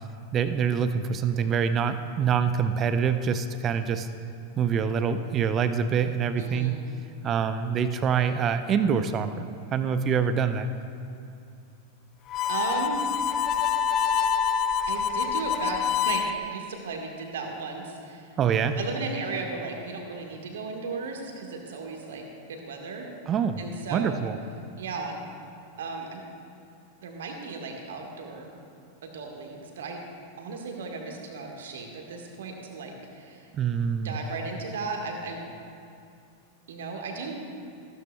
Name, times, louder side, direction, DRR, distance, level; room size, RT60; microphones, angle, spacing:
voice 1, 0.3-4.1 4.6-6.8 7.2-10.7 18.4-18.8 23.3-23.6 23.9-24.4 33.5-34.1, right 7 dB, 30° right, 10 dB, 0.5 m, -25 dB
voice 2, 6.4-6.8 12.5-13.0 14.9-18.3 18.7-22.2 22.5-23.1 23.6-24.2 24.8-25.2 25.8-26.2 27.0-28.6 29.0-30.0 30.4-33.5 34.0-35.4 36.7-37.4, right 4 dB, 60° right, 2 dB, 1.6 m, -35 dB
Harmonica, 12.3-16.3, left 7 dB, 35° left, 0.4 m, -26 dB
14.5 x 13.0 x 2.3 m, 2.5 s
figure-of-eight pair, 90°, 0 cm